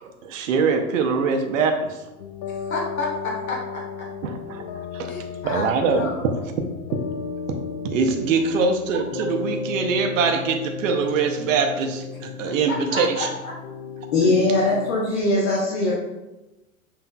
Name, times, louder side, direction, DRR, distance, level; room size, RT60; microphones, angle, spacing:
voice 1, 0.0-2.0 4.2-4.6 4.9-5.1 5.5-6.0 7.5-7.6 7.8-13.1, right 5 dB, 65° right, 5 dB, 0.7 m, -23 dB
sound 1, 2.2-15.0, left 5 dB, 40° left, 0.5 m, -34 dB
voice 2, 2.5-4.1 5.1-6.3 8.4-8.6 12.7-13.5, left 3 dB, 75° left, -2 dB, 1.3 m, -31 dB
voice 3, 14.1-15.9, left 2 dB, 60° left, -4 dB, 1.1 m, -20 dB
5.8 x 3.3 x 2.2 m, 1.0 s
figure-of-eight pair, 95°, 42 cm